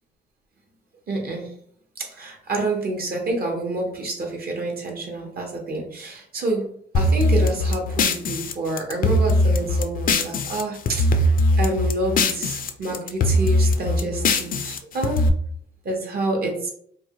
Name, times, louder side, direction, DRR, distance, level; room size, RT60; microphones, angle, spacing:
voice 1, 1.1-1.5 2.0-6.6 6.9-15.3 15.8-16.7, right 2 dB, 50° right, 1 dB, 0.8 m, -28 dB
sound 1, 6.9-10.6 10.9-12.7 12.9-15.3, left 1 dB, 45° left, 0.4 m, -20 dB
3.0 x 2.1 x 2.8 m, 0.63 s
cardioid pair, 90°, 20 cm